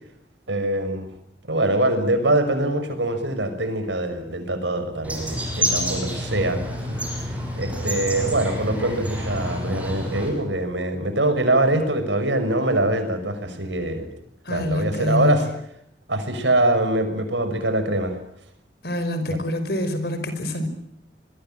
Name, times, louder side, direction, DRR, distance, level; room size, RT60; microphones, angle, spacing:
voice 1, 0.5-1.1 1.5-6.6 7.6-14.1 14.5-15.5 16.1-18.2 19.3-19.4, right 1 dB, 85° right, 9 dB, 5.9 m, -23 dB
sound 1, 5.0-10.3, equal, 10° right, 7.4 m, -28 dB
voice 2, 14.5-15.4 18.8-20.7, left 1 dB, 60° left, 9 dB, 5.4 m, -25 dB
26.0 x 22.0 x 9.1 m, 0.76 s
head